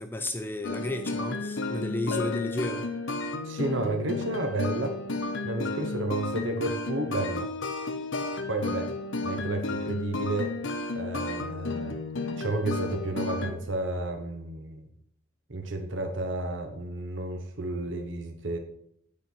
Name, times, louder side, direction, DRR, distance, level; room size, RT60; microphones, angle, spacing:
voice 1, 0.0-2.9, left 1 dB, 10° left, 7 dB, 0.6 m, -33 dB
sound 1, 0.6-13.5, left 2 dB, 75° left, 1.0 m, -32 dB
Bell, 2.1-3.7, left 9 dB, 55° left, 0.3 m, -39 dB
voice 2, 3.4-5.0 5.4-7.5 8.5-8.9 9.2-10.6 10.9-12.0 12.3-14.9 15.5-18.6, right 2 dB, 70° right, 5 dB, 1.1 m, -32 dB
8.9 x 5.3 x 6.1 m, 0.69 s
head